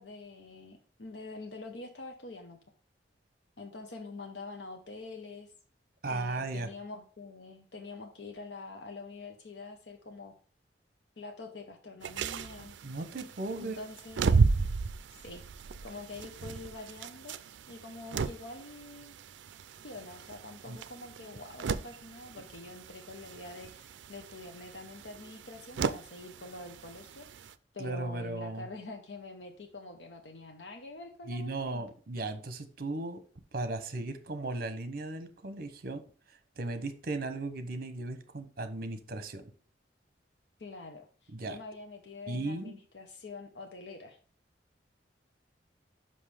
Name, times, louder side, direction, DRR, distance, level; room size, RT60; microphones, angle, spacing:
voice 1, 0.0-2.6 3.6-5.5 6.1-10.3 11.2-12.7 13.6-14.4 15.1-15.4 15.8-17.4 17.7-19.2 19.8-27.3 27.7-31.8 40.6-44.2, left 3 dB, 70° left, 4 dB, 0.9 m, -45 dB
voice 2, 6.0-6.7 12.8-13.8 20.7-20.8 27.8-28.7 31.3-33.2 33.5-36.0 36.3-39.5 41.3-41.6 42.3-42.8, right 2 dB, 55° right, 9 dB, 1.0 m, -36 dB
sound 1, 12.0-27.5, right 4 dB, 85° right, 0.4 m, -35 dB
5.6 x 5.4 x 4.9 m, 0.41 s
head